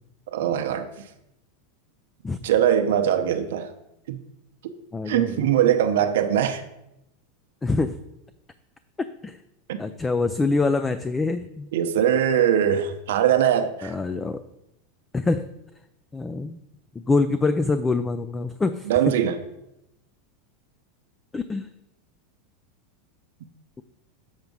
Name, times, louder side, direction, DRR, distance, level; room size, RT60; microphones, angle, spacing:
voice 1, 0.3-0.9 2.4-3.7 4.1-4.2 5.1-6.6 9.7-9.8 11.7-14.0 18.9-19.4, right 9 dB, 80° right, 6 dB, 0.7 m, -21 dB
voice 2, 4.9-5.5 7.6-7.9 9.0-9.4 9.8-11.7 13.8-14.4 15.1-15.5 16.1-16.6 17.1-18.9 21.3-21.7, left 3 dB, 15° left, 12 dB, 0.3 m, -25 dB
7.2 x 4.6 x 5.3 m, 0.87 s
supercardioid pair, 135°, 0 cm